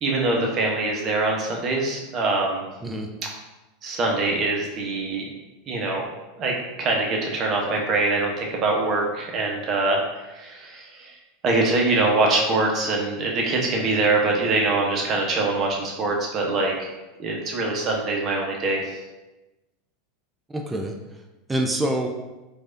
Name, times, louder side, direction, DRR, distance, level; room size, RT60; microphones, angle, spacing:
voice 1, 0.0-2.7 3.8-5.2 5.7-6.1 6.4-6.5 6.8-11.1 11.4-16.7 17.2-18.8, right 3 dB, 40° right, 0 dB, 0.9 m, -23 dB
voice 2, 20.5-21.2 21.5-22.1, right 1 dB, 15° right, 2 dB, 0.5 m, -26 dB
4.6 x 2.6 x 2.6 m, 1.1 s
hypercardioid pair, 90°, 0 cm